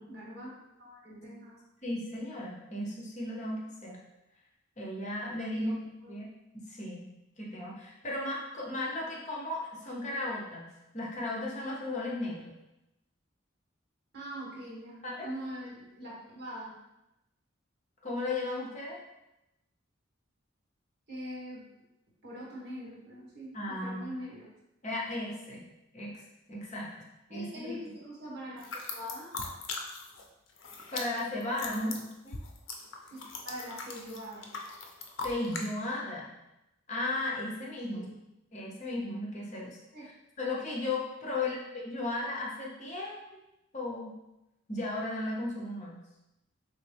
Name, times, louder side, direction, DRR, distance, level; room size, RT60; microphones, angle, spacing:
voice 1, 0.0-1.6 5.5-6.1 14.1-16.8 21.1-21.7 22.2-24.5 27.3-29.3 31.7-32.0 33.1-34.5 37.9-38.1 39.9-40.0 41.3-41.5, equal, 55° right, -5 dB, 1.4 m, -43 dB
voice 2, 1.8-4.0 4.8-5.7 6.1-6.3 6.5-7.1 7.4-12.5 15.0-15.3 18.0-19.0 23.5-24.1 24.8-25.7 25.9-26.1 26.5-26.9 27.3-27.7 30.9-31.9 32.2-32.4 35.2-36.3 36.9-38.1 38.5-39.8 40.4-43.2 43.7-44.1 44.7-46.0, left 2 dB, 35° left, -3 dB, 0.8 m, -35 dB
sound 1, 28.6-30.2 30.5-35.7, left 4 dB, 65° left, 0.6 m, -40 dB
4.1 x 3.1 x 3.4 m, 0.90 s
head